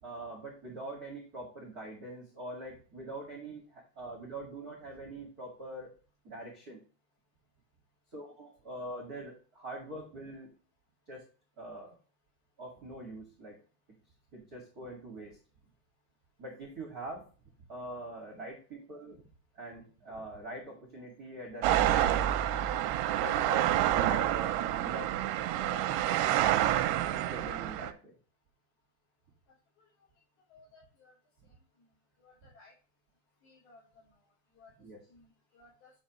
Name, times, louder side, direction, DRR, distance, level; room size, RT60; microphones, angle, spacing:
voice 1, 0.0-5.9 6.2-6.8 8.1-10.5 11.1-11.2 11.6-12.0 12.6-13.5 14.3-15.4 16.4-17.2 17.7-19.2 19.5-22.2 23.2-25.1 25.6-25.9 26.9-28.1 34.8-35.0, right 2 dB, 35° right, -2 dB, 1.5 m, -43 dB
sound 1, 21.6-27.9, right 12 dB, 85° right, 2.6 m, -28 dB
voice 2, 30.5-31.1 32.2-32.7 33.4-34.1 34.6-34.7 35.1-35.9, left 3 dB, 65° left, -10 dB, 5.2 m, -59 dB
9.1 x 5.6 x 3.0 m, 0.37 s
omnidirectional pair, 4.9 m